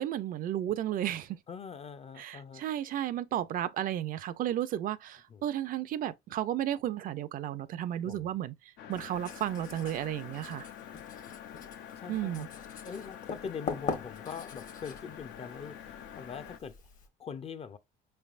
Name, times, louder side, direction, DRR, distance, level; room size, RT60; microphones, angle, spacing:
voice 1, 0.0-1.4 2.2-10.7 12.1-12.5, right 11 dB, 55° right, 0.4 m, -33 dB
voice 2, 1.5-2.6 5.3-5.4 8.0-8.3 12.0-12.5 12.8-15.9 16.2-16.8 17.2-17.8, left 6 dB, 35° left, 0.5 m, -42 dB
sound 1, 8.8-16.6, left 9 dB, 80° left, 0.6 m, -47 dB
Writing, 8.9-17.1, left 5 dB, 50° left, 1.1 m, -43 dB
5.1 x 3.3 x 2.4 m
cardioid pair, 110°, 17 cm